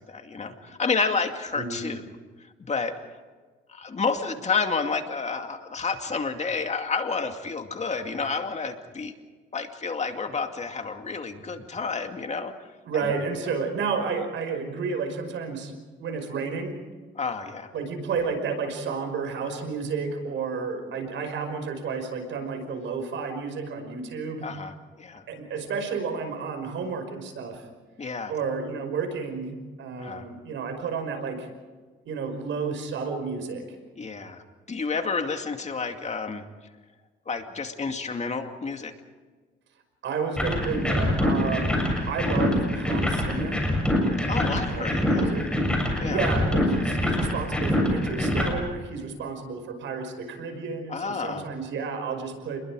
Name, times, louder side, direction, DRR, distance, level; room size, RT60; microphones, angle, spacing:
voice 1, 0.0-2.1 2.4-3.0 3.7-9.1 9.5-12.5 13.0-13.1 17.2-17.7 24.4-25.2 28.0-28.3 30.0-30.3 34.0-36.4 37.3-38.9 44.2-45.3 46.0-46.2 50.9-51.4, left 4 dB, 35° left, 5 dB, 2.4 m, -30 dB
voice 2, 12.9-15.7 16.0-16.8 17.7-24.5 25.3-27.6 28.3-31.5 32.1-33.8 40.0-43.6 44.7-45.5 46.1-52.6, right 5 dB, 75° right, 5 dB, 5.4 m, -31 dB
sound 1, 40.4-48.5, left 1 dB, 5° left, 7.3 m, -25 dB
29.0 x 21.5 x 4.9 m, 1.4 s
cardioid pair, 90°, 20 cm